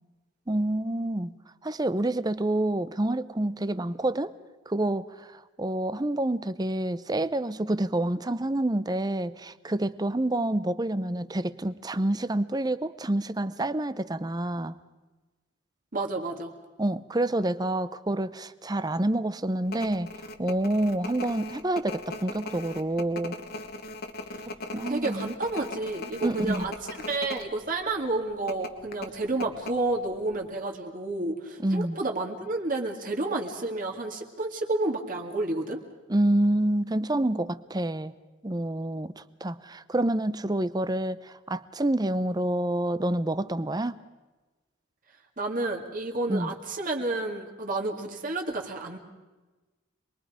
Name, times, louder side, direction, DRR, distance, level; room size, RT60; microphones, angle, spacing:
voice 1, 0.5-1.4 1.6-4.3 4.7-14.8 16.8-20.1 20.4-23.4 24.5-25.3 26.2-26.7 31.6-32.0 36.1-38.1 38.4-44.0 46.3-46.5, right 1 dB, 20° right, 15 dB, 0.6 m, -28 dB
voice 2, 15.9-16.5 24.9-26.7 27.1-35.8 45.4-49.0, right 2 dB, 40° right, 1 dB, 2.3 m, -30 dB
sound 1, 19.7-27.5 27.7-27.8 28.5-30.2 30.4-30.5, left 2 dB, 50° left, 1.4 m, -39 dB
27.0 x 22.0 x 5.0 m, 1.2 s
head